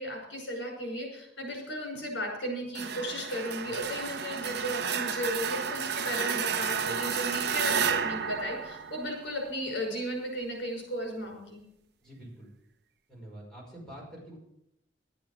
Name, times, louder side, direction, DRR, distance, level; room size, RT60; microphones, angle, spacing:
voice 1, 0.0-11.6, equal, 90° left, 1 dB, 5.7 m, -35 dB
sound 1, 2.7-9.5, right 6 dB, 60° right, 0.9 m, -31 dB
voice 2, 6.6-7.1 12.0-12.5 13.1-14.4, right 1 dB, 5° left, -3 dB, 5.6 m, -47 dB
12.0 x 9.3 x 7.4 m, 0.79 s
head